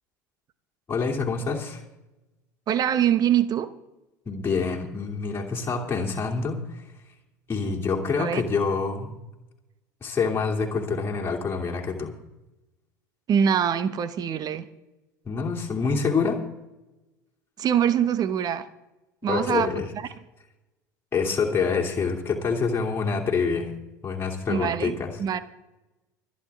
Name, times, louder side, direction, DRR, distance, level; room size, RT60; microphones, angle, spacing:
voice 1, 0.9-1.8 4.3-6.8 7.5-9.1 10.0-12.1 15.2-16.4 19.3-19.9 21.1-23.7 24.0-25.2, left 5 dB, 25° left, -1 dB, 2.8 m, -26 dB
voice 2, 2.7-3.7 8.2-8.4 13.3-14.6 17.6-18.7 19.2-19.7 24.5-24.9 25.2-25.4, right 9 dB, 40° right, 13 dB, 1.2 m, -23 dB
25.0 x 9.8 x 3.6 m, 0.96 s
figure-of-eight pair, 70°, 10 cm